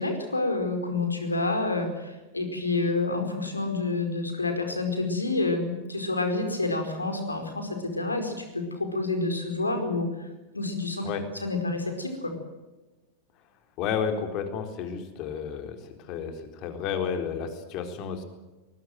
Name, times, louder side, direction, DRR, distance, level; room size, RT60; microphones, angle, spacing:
voice 1, 0.0-10.3 10.5-11.1 11.4-12.3, left 3 dB, 80° left, 6 dB, 4.8 m, -28 dB
voice 2, 13.8-15.8 16.1-18.2, left 7 dB, 40° left, 6 dB, 4.1 m, -31 dB
23.5 x 21.5 x 7.8 m, 1.1 s
figure-of-eight pair, 90°, 0 cm